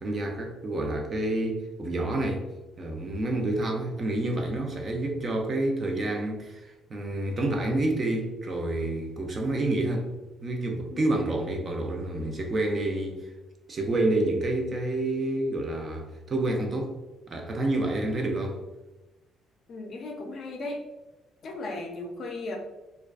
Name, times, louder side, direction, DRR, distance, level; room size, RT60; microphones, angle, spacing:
voice 1, 0.0-2.5 2.8-10.1 10.4-13.3 13.7-16.9 17.3-18.6, right 2 dB, 30° right, 0.3 m, -28 dB
voice 2, 19.7-20.8 21.4-22.6, left 2 dB, 45° left, 0.4 m, -36 dB
2.4 x 2.2 x 2.3 m
cardioid pair, 155°, 0 cm